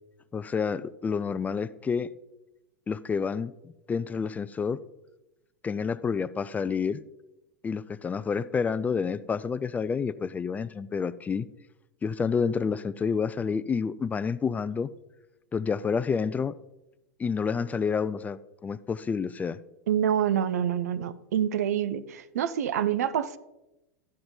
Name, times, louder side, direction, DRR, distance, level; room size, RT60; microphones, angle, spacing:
voice 1, 0.3-2.1 2.9-4.8 5.6-7.0 7.6-11.5 12.0-14.9 15.5-16.5 17.2-19.6, left 6 dB, 20° left, 16 dB, 0.4 m, -29 dB
voice 2, 19.9-23.4, right 9 dB, 75° right, 15 dB, 0.7 m, -27 dB
12.5 x 7.8 x 3.8 m, 0.94 s
hypercardioid pair, 105°, 9 cm